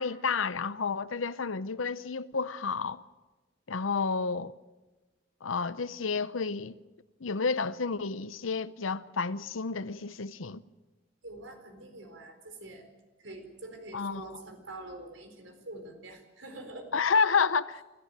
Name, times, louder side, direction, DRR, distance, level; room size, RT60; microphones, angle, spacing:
voice 1, 0.0-3.0 3.7-4.5 5.4-6.8 7.2-10.6 13.9-14.2 16.9-17.8, left 5 dB, 90° left, 0.8 m, -30 dB
voice 2, 11.2-12.8 13.2-16.9, right 2 dB, 75° right, 4.3 m, -45 dB
26.5 x 14.0 x 9.0 m
head